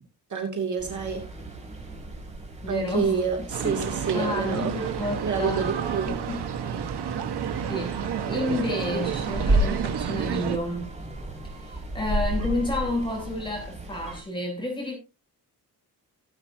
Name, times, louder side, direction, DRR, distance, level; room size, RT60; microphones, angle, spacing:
voice 1, 0.3-1.3 2.7-4.8 5.2-6.2, right 5 dB, 45° right, 2.7 m, -28 dB
sound 1, 0.8-14.2, right 1 dB, 15° right, 4.9 m, -33 dB
voice 2, 2.6-3.2 3.6-3.7 4.1-5.6 6.3-6.4 7.7-8.0 8.3-10.9 11.6-15.0, left 1 dB, 10° left, 7.7 m, -30 dB
sound 2, 3.5-10.6, right 8 dB, 75° right, 1.5 m, -30 dB
18.0 x 8.9 x 2.8 m
cardioid pair, 130°, 40 cm